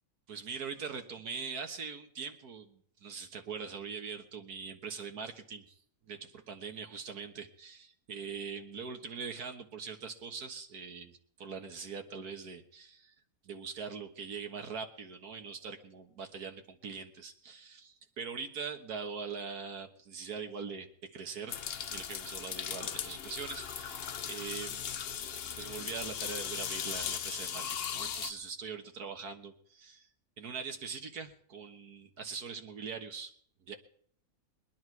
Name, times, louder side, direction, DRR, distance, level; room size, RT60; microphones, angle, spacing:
voice 1, 0.3-5.8 6.1-13.1 13.4-21.6 21.9-24.9 25.6-30.1 30.4-33.3 33.6-33.8, right 5 dB, 85° right, 6 dB, 1.9 m, -42 dB
sound 1, 21.5-28.3, left 8 dB, 55° left, 0.7 m, -38 dB
22.0 x 10.5 x 4.7 m, 0.63 s
omnidirectional pair, 1.6 m